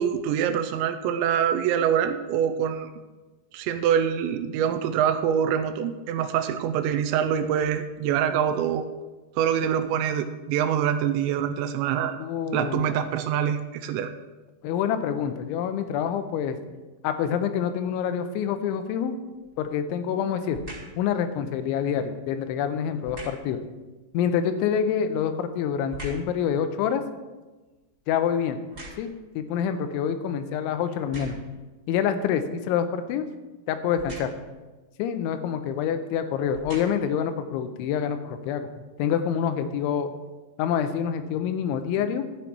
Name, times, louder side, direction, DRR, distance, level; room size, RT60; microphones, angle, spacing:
voice 1, 0.0-2.9 3.5-8.9 9.4-12.2 12.5-14.1, right 9 dB, 85° right, 8 dB, 2.8 m, -25 dB
voice 2, 12.2-12.9 14.6-16.6 17.0-19.2 19.6-20.6 21.0-23.6 24.1-27.0 28.1-28.6 29.0-31.4 31.9-33.3 33.7-34.3 35.0-38.7 39.0-40.1 40.6-42.2, left 8 dB, 85° left, 9 dB, 3.1 m, -26 dB
sound 1, 19.3-19.7 20.5-21.0 23.0-23.5 24.9-26.4 26.8-29.3 30.0-30.1 30.9-31.6 33.9-34.5 35.5-35.7 36.3-37.2 37.8-37.9, right 2 dB, 20° right, 1.8 m, -43 dB
12.0 x 8.8 x 4.6 m, 1.2 s
omnidirectional pair, 5.4 m